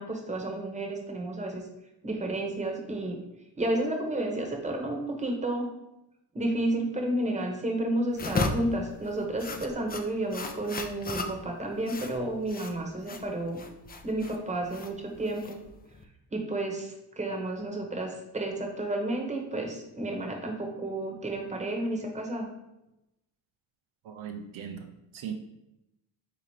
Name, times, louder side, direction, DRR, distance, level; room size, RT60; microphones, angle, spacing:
voice 1, 0.0-1.6 2.0-3.2 3.6-5.7 6.3-13.6 14.0-15.6 16.3-22.5, right 1 dB, 15° right, 1 dB, 1.0 m, -31 dB
sound 1, 8.1-16.0, left 3 dB, 20° left, 0.4 m, -36 dB
voice 2, 24.0-25.3, right 7 dB, 75° right, 4 dB, 0.7 m, -39 dB
3.7 x 2.9 x 4.8 m, 0.90 s
cardioid pair, 85°, 48 cm